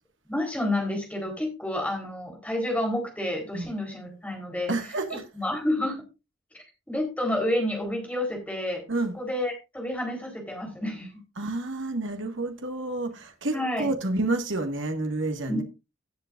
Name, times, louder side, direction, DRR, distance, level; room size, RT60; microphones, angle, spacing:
voice 1, 0.3-4.7 5.3-6.0 6.5-8.8 9.1-11.1 13.5-13.9 15.5-15.6, left 1 dB, 5° left, 3.9 m, -29 dB
voice 2, 4.7-5.2 8.9-9.1 11.4-15.6, right 2 dB, 70° right, 1.8 m, -29 dB
17.5 x 7.7 x 2.5 m
head